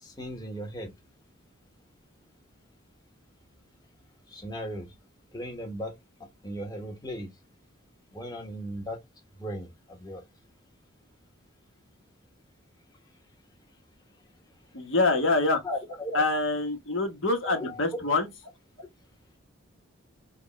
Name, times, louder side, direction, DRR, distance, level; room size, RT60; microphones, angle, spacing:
voice 1, 0.0-0.9 4.3-4.9 5.3-5.9 6.4-7.3 8.1-9.0 9.4-10.2 15.6-16.2 17.4-17.8 18.8-18.9, equal, 20° left, 1.2 m, -36 dB
voice 2, 14.7-15.6 16.1-18.3, left 3 dB, 65° left, 1.2 m, -25 dB
6.3 x 2.4 x 3.1 m
head